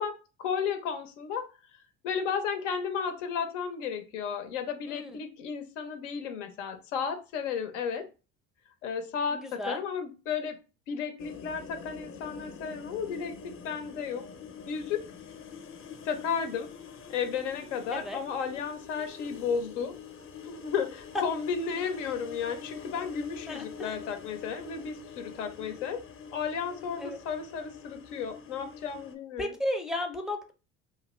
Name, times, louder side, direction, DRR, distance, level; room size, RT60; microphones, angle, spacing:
voice 1, 0.0-1.5 2.0-8.1 8.8-10.6 10.9-14.3 14.7-15.0 16.0-16.7 17.1-19.9 20.4-26.0 26.3-29.5, left 6 dB, 80° left, 7 dB, 0.7 m, -33 dB
voice 2, 4.9-5.2 9.3-9.8 17.9-18.2 23.5-24.0 27.0-27.2 29.4-30.5, left 1 dB, ahead, 2 dB, 0.4 m, -34 dB
sound 1, 11.2-29.1, left 6 dB, 35° left, 0.7 m, -45 dB
2.5 x 2.4 x 3.0 m, 0.32 s
hypercardioid pair, 70°, 36 cm